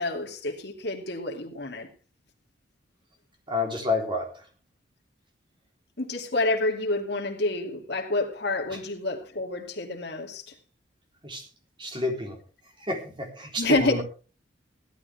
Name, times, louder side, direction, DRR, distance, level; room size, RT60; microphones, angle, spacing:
voice 1, 0.0-1.9 6.0-10.5 13.6-14.0, left 2 dB, 60° left, 2.5 m, -28 dB
voice 2, 3.5-4.4 8.7-8.8 11.2-11.4 11.8-12.4 12.8-14.0, left 2 dB, 25° right, 3.5 m, -29 dB
17.0 x 12.0 x 3.4 m
head